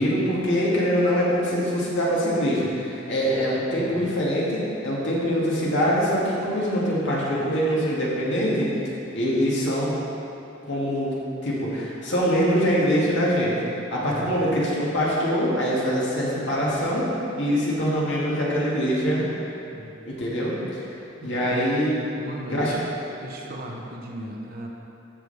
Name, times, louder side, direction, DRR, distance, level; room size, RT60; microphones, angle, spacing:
voice 1, 0.0-8.7 9.1-10.0 10.7-11.1 11.4-13.5 13.9-19.2 20.0-20.9 21.2-21.9 22.5-22.7 23.5-23.6, equal, 65° left, -6 dB, 2.2 m, -24 dB
voice 2, 3.4-4.1 14.0-14.6 19.7-19.9 21.2-21.7 22.2-22.8 23.2-24.7, right 1 dB, 50° right, -1 dB, 1.0 m, -37 dB
13.0 x 6.4 x 3.4 m, 2.8 s
head